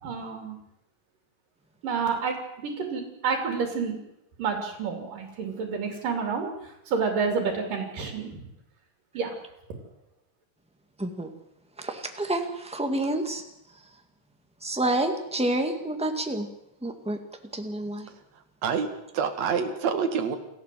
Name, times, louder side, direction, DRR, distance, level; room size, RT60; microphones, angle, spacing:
voice 1, 0.0-0.6 1.8-2.3 2.6-4.0 4.4-6.5 6.9-8.4 9.1-9.3, right 5 dB, 80° right, 3 dB, 4.4 m, -29 dB
voice 2, 11.8-13.4 14.6-16.5 16.8-17.2 17.5-18.1, right 1 dB, 5° right, 5 dB, 1.2 m, -28 dB
voice 3, 18.6-20.4, right 6 dB, 55° right, 5 dB, 3.1 m, -27 dB
28.0 x 14.5 x 7.7 m, 0.85 s
omnidirectional pair, 3.8 m